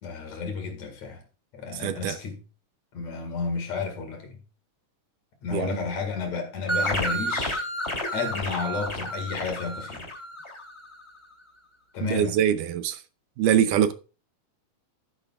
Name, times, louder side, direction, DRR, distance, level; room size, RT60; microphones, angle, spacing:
voice 1, 0.0-1.2 1.5-2.4 2.9-4.4 5.4-7.6 8.1-10.1 11.9-12.4, left 5 dB, 60° left, 3.2 m, -32 dB
voice 2, 1.7-2.2 5.5-5.9 12.0-13.0 13.4-13.9, right 10 dB, 80° right, 2.3 m, -24 dB
sound 1, 6.7-11.0, equal, 20° left, 3.1 m, -31 dB
13.0 x 10.5 x 2.4 m
omnidirectional pair, 3.7 m